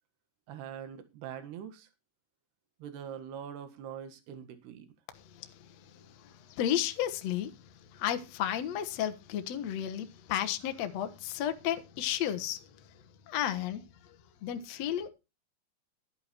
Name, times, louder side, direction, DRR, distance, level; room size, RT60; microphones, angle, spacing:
voice 1, 0.5-1.9 2.8-5.0, right 9 dB, 85° right, 3.7 m, -43 dB
voice 2, 6.5-7.5 7.9-12.6 13.3-13.8 14.4-15.1, left 11 dB, 65° left, 1.7 m, -32 dB
12.5 x 10.5 x 4.5 m
omnidirectional pair, 4.6 m